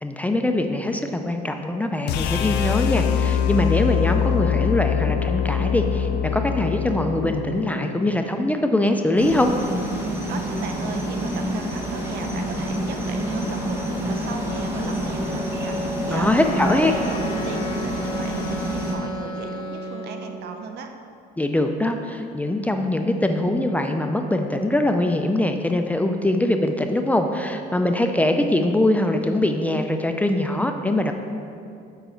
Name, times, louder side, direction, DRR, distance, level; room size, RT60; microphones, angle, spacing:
voice 1, 0.0-9.5 16.1-16.9 21.4-31.1, left 1 dB, 10° left, 5 dB, 0.4 m, -22 dB
sound 1, 2.1-8.2, left 9 dB, 80° left, 0.5 m, -23 dB
sound 2, 9.2-18.9, equal, 15° right, 1.3 m, -27 dB
voice 2, 10.3-20.9, right 5 dB, 75° right, 5 dB, 0.7 m, -36 dB
Wind instrument woodwind instrument, 16.3-20.4, left 1 dB, 30° left, 1.0 m, -33 dB
7.0 x 5.2 x 4.4 m, 2.5 s
cardioid pair, 110°, 17 cm